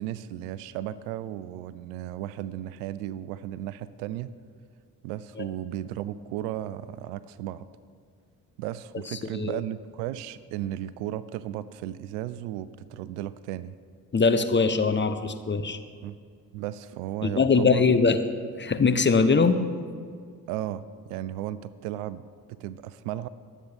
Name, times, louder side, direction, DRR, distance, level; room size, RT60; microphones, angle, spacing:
voice 1, 0.0-4.3 5.0-7.7 8.6-13.7 16.0-16.2 16.5-17.8 20.5-22.2 22.5-23.3, right 12 dB, 70° right, 17 dB, 0.6 m, -35 dB
voice 2, 14.1-15.8 17.2-18.2 18.6-19.6, left 4 dB, 20° left, 9 dB, 0.9 m, -22 dB
23.0 x 8.4 x 3.5 m, 2.1 s
hypercardioid pair, 45°, 49 cm